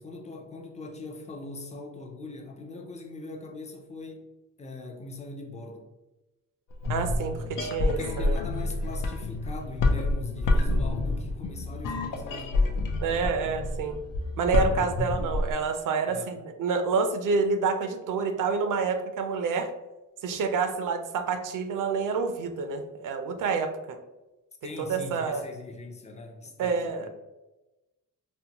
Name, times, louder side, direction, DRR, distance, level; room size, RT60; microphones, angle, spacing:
voice 1, 0.0-4.3 4.6-5.9 7.9-12.9 16.1-16.4 24.6-27.1, left 2 dB, 20° left, 2 dB, 0.4 m, -41 dB
sound 1, 6.7-15.5, left 2 dB, 85° left, 0.6 m, -28 dB
voice 2, 6.9-8.4 13.0-14.0 14.4-19.7 20.2-24.0 24.6-25.5 26.6-27.1, right 5 dB, 75° right, 7 dB, 0.5 m, -28 dB
4.2 x 2.1 x 2.8 m, 1.0 s
wide cardioid pair, 155°, 32 cm